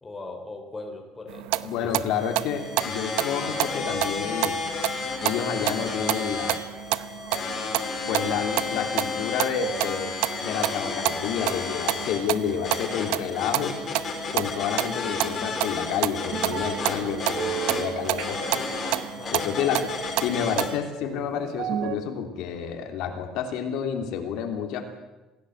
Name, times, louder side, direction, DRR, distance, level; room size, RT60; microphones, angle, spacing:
voice 1, 0.0-1.9 19.2-19.5, left 2 dB, 10° left, 3 dB, 3.4 m, -39 dB
sound 1, 1.3-20.8, right 18 dB, 85° right, 0.8 m, -31 dB
voice 2, 1.6-4.6 5.2-6.6 8.1-13.7 14.3-18.7 19.3-19.9 20.2-24.9, left 8 dB, 60° left, 4 dB, 3.1 m, -29 dB
sound 2, 2.1-20.7, left 4 dB, 25° left, 5.0 m, -32 dB
sound 3, 16.3-22.0, right 10 dB, 50° right, 1.3 m, -35 dB
26.5 x 16.5 x 8.0 m, 1.1 s
cardioid pair, 170°, 0 cm